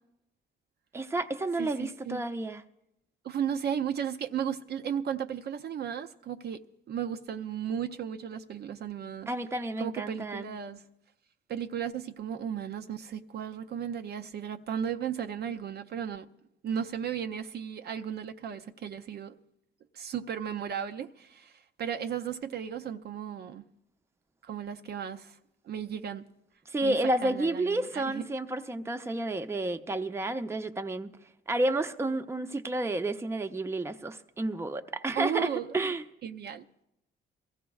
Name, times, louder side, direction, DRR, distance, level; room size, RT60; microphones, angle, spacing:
voice 1, 0.9-2.6 9.3-10.5 26.7-31.2 31.5-36.0, right 2 dB, 15° right, 0.6 m, -31 dB
voice 2, 1.6-2.2 3.2-9.3 9.8-10.8 11.5-16.3 16.6-19.3 19.9-23.6 24.4-25.4 25.6-26.3 26.8-28.3 35.1-35.7 36.2-36.7, right 8 dB, 55° right, 0.5 m, -35 dB
22.0 x 15.0 x 2.3 m
cardioid pair, 90°, 20 cm